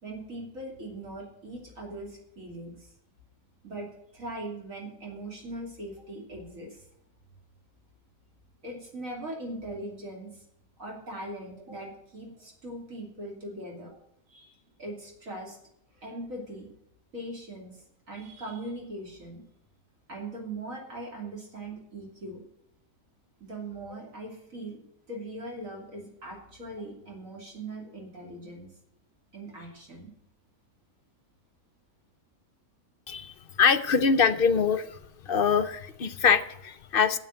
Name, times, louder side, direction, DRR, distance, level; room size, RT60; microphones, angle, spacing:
voice 1, 0.0-2.9 3.6-6.8 8.6-10.4 10.8-13.9 14.3-15.6 15.9-16.7 17.1-19.4 20.1-22.4 23.4-28.7 29.3-30.1, right 1 dB, 65° right, -1 dB, 3.3 m, -40 dB
voice 2, 33.1-35.0 35.3-37.2, left 6 dB, 60° left, 12 dB, 0.6 m, -24 dB
9.1 x 8.2 x 7.7 m, 0.76 s
omnidirectional pair, 1.5 m